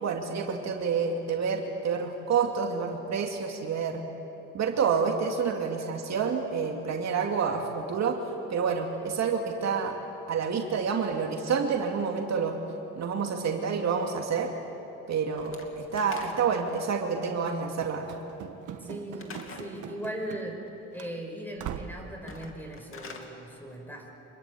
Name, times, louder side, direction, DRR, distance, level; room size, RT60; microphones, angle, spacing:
voice 1, 0.0-4.0 4.5-8.2 8.5-9.9 10.3-12.6 13.0-14.5 15.1-18.2, right 6 dB, 60° right, 2 dB, 2.4 m, -28 dB
Slam / Wood, 15.4-16.7 19.2-19.8 22.1-23.3, left 4 dB, 45° left, 2.8 m, -44 dB
Run / Slam, 17.8-20.7 21.0-21.1 21.6-22.1, right 9 dB, 80° right, 1.5 m, -41 dB
voice 2, 18.8-20.6 20.9-24.1, right 1 dB, 5° left, 2 dB, 5.6 m, -39 dB
26.0 x 21.5 x 8.5 m, 3.0 s
cardioid pair, 90°, 30 cm